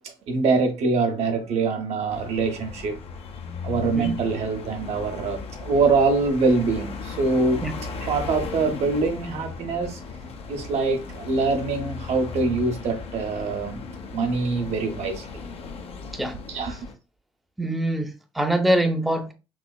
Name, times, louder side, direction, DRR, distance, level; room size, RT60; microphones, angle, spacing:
voice 1, 0.0-3.0 3.6-7.6 8.0-10.0 10.5-13.8 14.1-15.3 16.5-16.8, right 4 dB, 55° right, 0.7 m, -24 dB
sound 1, 2.1-16.9, left 4 dB, 50° left, 0.5 m, -36 dB
voice 2, 17.6-19.3, right 1 dB, ahead, 0.5 m, -24 dB
3.0 x 2.8 x 2.2 m
figure-of-eight pair, 45°, 13 cm